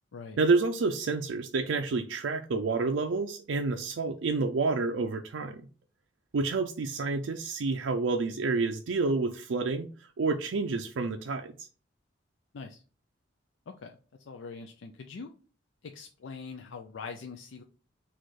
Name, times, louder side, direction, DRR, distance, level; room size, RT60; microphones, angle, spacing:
voice 1, 0.4-5.6 6.3-9.9 10.2-11.7, right 3 dB, 85° right, 0.5 m, -29 dB
voice 2, 14.3-15.3 15.9-17.6, left 4 dB, 75° left, 0.5 m, -43 dB
4.2 x 2.4 x 4.6 m
head